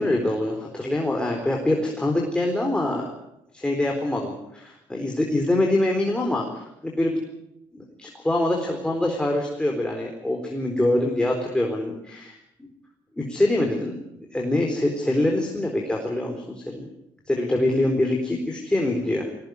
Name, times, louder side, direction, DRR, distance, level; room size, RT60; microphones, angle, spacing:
voice 1, 0.0-3.1 3.5-7.2 7.7-12.4 13.2-14.0 14.3-16.9 17.3-19.3, left 1 dB, 10° left, 0 dB, 4.0 m, -24 dB
20.5 x 17.5 x 9.6 m, 0.84 s
cardioid pair, 105°, 10 cm